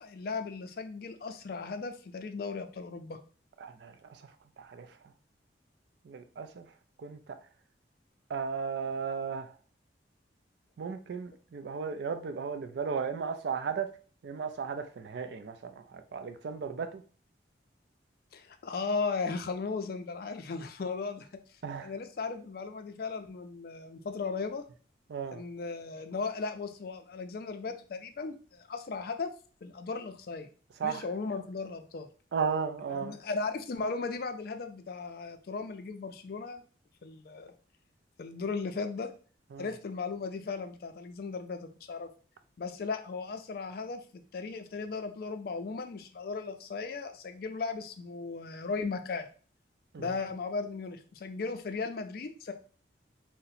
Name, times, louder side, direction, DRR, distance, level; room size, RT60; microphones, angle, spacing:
voice 1, 0.0-3.2 18.3-21.3 21.8-24.6 25.3-29.3 29.6-30.5 30.8-32.1 32.9-36.6 37.0-37.5 38.2-39.1 39.6-42.1 42.6-44.0 44.3-49.3 50.0-52.5, left 4 dB, 55° left, 8 dB, 0.4 m, -36 dB
voice 2, 3.6-3.9 4.6-4.9 6.1-6.7 7.0-7.2 8.3-9.5 10.8-13.9 14.2-17.0 21.6-21.9 25.1-25.4 30.8-31.0 32.3-33.1 39.5-39.7 49.9-50.0, right 6 dB, 65° right, 9 dB, 0.4 m, -35 dB
2.7 x 2.1 x 4.0 m, 0.40 s
head